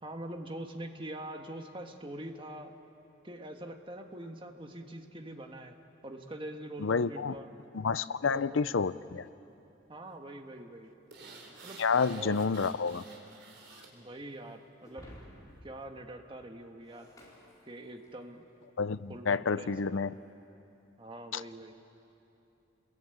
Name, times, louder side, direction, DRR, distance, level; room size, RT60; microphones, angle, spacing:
voice 1, 0.0-2.7 3.2-5.8 6.0-7.5 8.3-8.6 9.9-10.9 11.6-11.8 12.1-12.4 13.9-15.1 15.6-17.1 17.7-18.4 19.1-20.0 21.0-21.7, right 1 dB, 25° right, 4 dB, 1.6 m, -44 dB
voice 2, 6.8-7.3 7.7-9.3 11.8-13.0 18.8-20.1 21.3-21.4, left 5 dB, 80° left, 16 dB, 0.6 m, -29 dB
sound 1, 11.1-13.9 14.3-14.4, right 3 dB, 60° right, 4.2 m, -51 dB
Shatter, 14.8-18.3, equal, 20° left, 4.8 m, -54 dB
28.5 x 22.0 x 9.2 m, 2.8 s
head